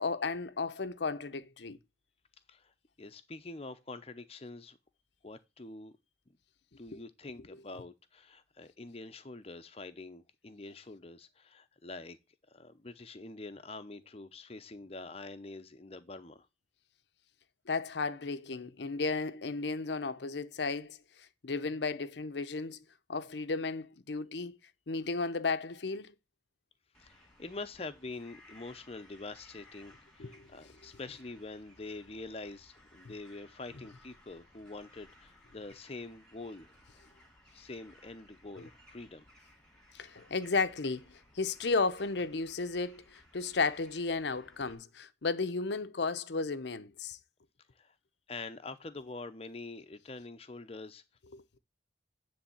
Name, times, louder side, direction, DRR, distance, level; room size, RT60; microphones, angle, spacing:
voice 1, 0.0-1.8 17.7-22.8 23.1-24.6 24.9-26.1 30.2-30.7 38.6-38.7 39.9-47.2 51.3-51.4, left 4 dB, 70° left, 0.7 m, -34 dB
voice 2, 3.0-4.8 5.2-5.9 6.3-6.4 6.8-12.2 12.5-16.5 27.0-36.8 37.5-39.2 47.8-47.9 48.3-51.0, left 3 dB, 35° left, 0.8 m, -45 dB
sound 1, 26.9-44.7, left 1 dB, 5° left, 2.2 m, -61 dB
10.0 x 3.5 x 7.0 m
head